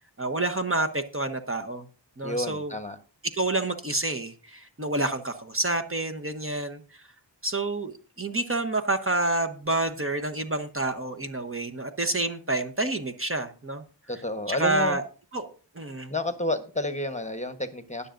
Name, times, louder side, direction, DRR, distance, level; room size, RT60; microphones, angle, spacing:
voice 1, 0.2-1.9 2.2-2.7 3.3-7.0 7.4-13.8 14.5-15.0 15.3-15.5 15.7-16.1, right 2 dB, 30° right, 7 dB, 1.0 m, -28 dB
voice 2, 2.2-3.0 14.1-15.0 16.1-18.1, left 1 dB, 15° left, 9 dB, 1.1 m, -30 dB
21.0 x 6.9 x 2.6 m, 0.37 s
wide cardioid pair, 70°, 44 cm